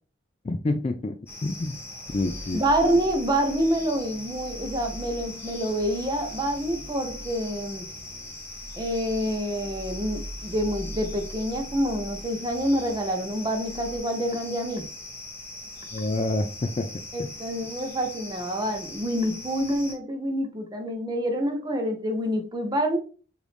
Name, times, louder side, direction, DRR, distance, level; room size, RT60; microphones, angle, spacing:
voice 1, 0.4-1.2 1.4-1.8 2.1-2.6 15.9-16.9 17.2-17.3, left 2 dB, 30° left, 6 dB, 0.3 m, -27 dB
sound 1, 1.3-19.9, left 2 dB, 15° left, 1.0 m, -41 dB
sound 2, 2.1-14.0, equal, 60° left, 1.5 m, -43 dB
voice 2, 2.5-7.9 8.8-14.9 17.1-23.0, equal, 20° right, 4 dB, 0.7 m, -27 dB
5.0 x 2.6 x 3.2 m, 0.39 s
head